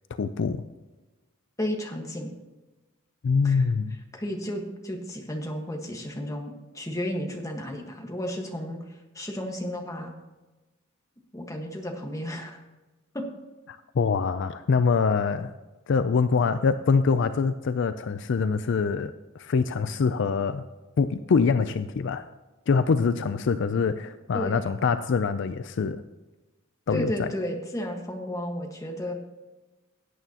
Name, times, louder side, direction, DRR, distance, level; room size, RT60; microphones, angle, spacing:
voice 1, 0.2-0.6 3.2-4.0 13.9-15.5 15.9-20.7 21.0-22.3 22.7-26.0 26.9-27.3, left 5 dB, 60° left, 12 dB, 0.4 m, -24 dB
voice 2, 1.6-2.3 3.4-3.6 4.1-10.1 11.3-12.6 13.1-13.3 24.3-24.6 26.9-29.1, equal, 15° left, 2 dB, 1.4 m, -33 dB
17.0 x 9.0 x 2.9 m, 1.1 s
head